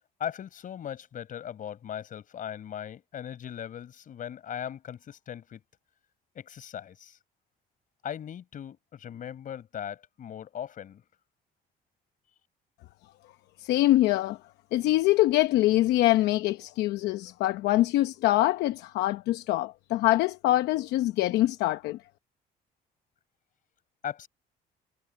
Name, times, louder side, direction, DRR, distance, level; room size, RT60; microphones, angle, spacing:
voice 1, 0.2-5.6 6.4-7.2 8.0-11.0 24.0-24.3, left 9 dB, 50° left, 5.4 m, -38 dB
voice 2, 13.6-14.4 14.7-22.0, left 16 dB, 85° left, 0.9 m, -24 dB
cardioid pair, 110°, 17 cm